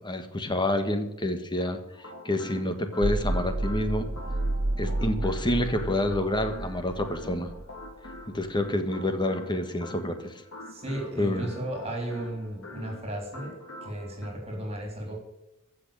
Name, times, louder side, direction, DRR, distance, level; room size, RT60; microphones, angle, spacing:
voice 1, 0.0-1.8 2.2-4.1 4.8-7.5 8.3-10.3 11.2-11.4, left 1 dB, 20° left, 7 dB, 1.5 m, -28 dB
sound 1, 1.9-14.3, left 1 dB, 70° left, 2.8 m, -45 dB
sound 2, 3.0-8.5, right 1 dB, 50° right, 1.1 m, -31 dB
voice 2, 10.7-13.5 13.8-15.2, right 1 dB, 30° right, 1 dB, 3.8 m, -34 dB
15.0 x 6.4 x 8.8 m, 0.91 s
head